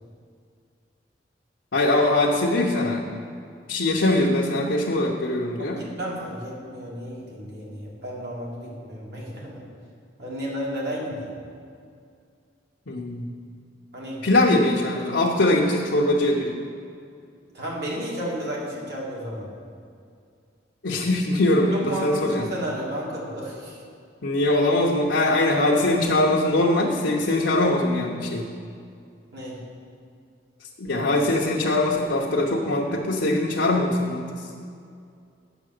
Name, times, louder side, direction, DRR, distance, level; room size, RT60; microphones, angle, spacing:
voice 1, 1.7-3.0 3.7-5.8 12.9-13.3 14.2-16.5 20.8-22.5 24.2-28.5 30.8-34.2, left 1 dB, 80° left, -4 dB, 1.0 m, -22 dB
voice 2, 5.6-9.6 10.2-11.3 13.9-14.2 17.5-19.5 21.7-23.8 29.3-29.6, equal, 65° right, -4 dB, 2.5 m, -32 dB
8.9 x 6.8 x 6.6 m, 2.3 s
head